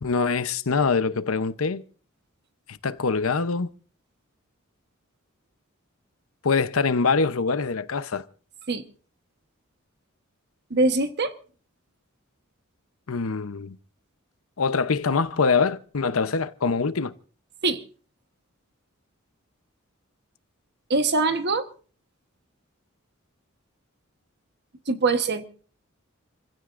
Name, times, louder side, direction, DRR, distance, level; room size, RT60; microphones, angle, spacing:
voice 1, 0.0-1.8 2.7-3.7 6.4-8.2 13.1-13.8 14.6-17.1, left 4 dB, 85° left, 0.8 m, -24 dB
voice 2, 10.7-11.3 17.6-17.8 20.9-21.7 24.9-25.4, right 3 dB, 55° right, 1.2 m, -23 dB
29.0 x 16.0 x 2.6 m
head